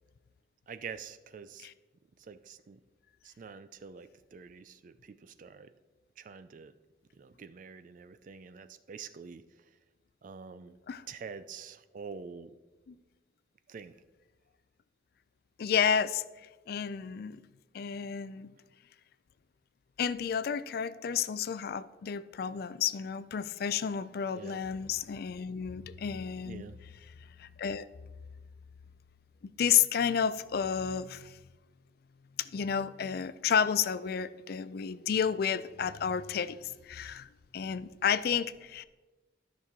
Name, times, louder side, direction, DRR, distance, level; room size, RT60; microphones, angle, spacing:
voice 1, 0.7-1.7 2.2-2.8 3.2-5.7 6.2-6.7 7.2-9.4 10.2-10.8 11.1-12.5 13.7-13.9 24.3-24.6 26.5-26.8, right 5 dB, 45° right, 12 dB, 0.4 m, -46 dB
voice 2, 15.6-16.2 16.7-17.4 17.7-18.5 20.0-26.6 27.4-27.9 29.4-31.4 32.4-37.3 37.5-38.8, left 7 dB, 55° left, 15 dB, 0.4 m, -31 dB
12.5 x 6.0 x 3.7 m, 1.2 s
head